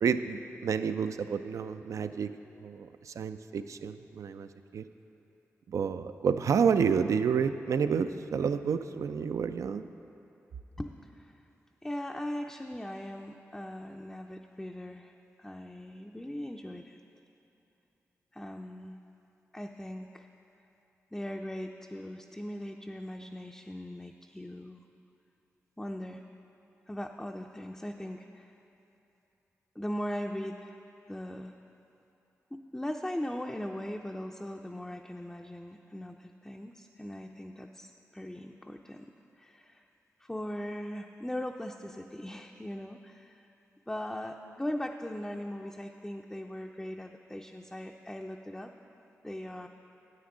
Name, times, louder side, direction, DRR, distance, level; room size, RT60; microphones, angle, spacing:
voice 1, 0.0-2.3 2.6-4.8 5.7-9.9, right 6 dB, 70° right, 11 dB, 0.3 m, -29 dB
voice 2, 10.8-11.4 11.8-17.0 18.3-19.0 19.5-20.3 21.1-24.8 25.8-26.2 26.9-28.5 29.8-30.8 31.1-31.5 32.5-39.1 39.4-39.9 40.2-43.5 43.9-48.7 49.2-49.7, left 1 dB, 10° left, 2 dB, 0.4 m, -39 dB
9.5 x 8.7 x 3.8 m, 2.9 s
cardioid pair, 45°, 6 cm